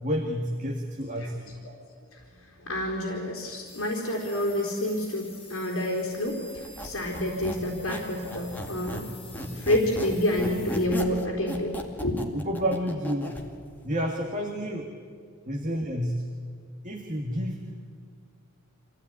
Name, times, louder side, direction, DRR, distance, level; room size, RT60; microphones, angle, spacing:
voice 1, 0.0-1.6 12.3-13.4 13.8-14.9 15.5-16.2 16.8-17.9, equal, 35° right, 1 dB, 2.0 m, -30 dB
voice 2, 2.6-9.1 9.4-11.7 12.0-12.2, left 1 dB, 65° left, -3 dB, 4.2 m, -28 dB
sound 1, 3.7-10.9, left 3 dB, 25° left, 5.2 m, -49 dB
Squeak, 6.6-9.1 9.3-13.4, equal, 10° left, 2.3 m, -35 dB
26.0 x 16.5 x 9.8 m, 2.2 s
head